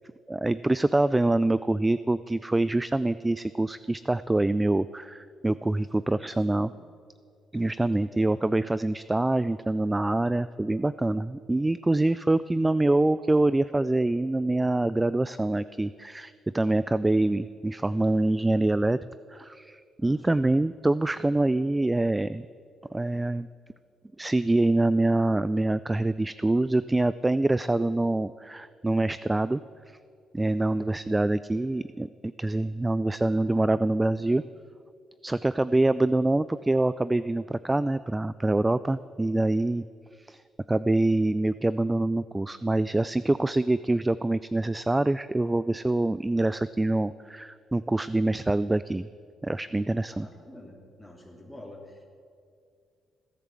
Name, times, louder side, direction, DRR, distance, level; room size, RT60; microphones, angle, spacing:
voice 1, 0.3-6.7 7.5-19.0 19.3-22.4 22.9-23.5 24.2-29.6 29.9-30.0 30.3-34.4 35.2-39.8 40.2-40.4 40.7-49.1 49.4-50.3, right 2 dB, 15° right, 16 dB, 0.3 m, -25 dB
voice 2, 20.0-20.5 50.1-52.1, left 1 dB, 5° left, 0 dB, 3.3 m, -48 dB
17.0 x 11.0 x 7.5 m, 2.2 s
cardioid pair, 90°, 0 cm